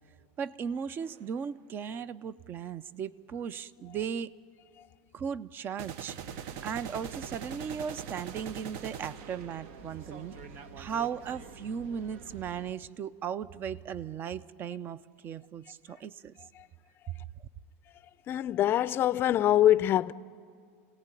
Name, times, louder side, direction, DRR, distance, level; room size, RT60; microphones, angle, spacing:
voice 1, 0.4-4.3 5.1-10.4 10.8-16.4 17.4-17.5, right 7 dB, 30° right, 0.6 m, -37 dB
sound 1, 1.0-1.2 5.8-10.0, right 9 dB, 55° right, 0.9 m, -42 dB
sound 2, 6.2-12.7, right 4 dB, 70° right, 1.4 m, -49 dB
voice 2, 18.3-20.1, left 12 dB, 30° left, 0.5 m, -25 dB
27.5 x 18.0 x 9.1 m
supercardioid pair, 140°, 7 cm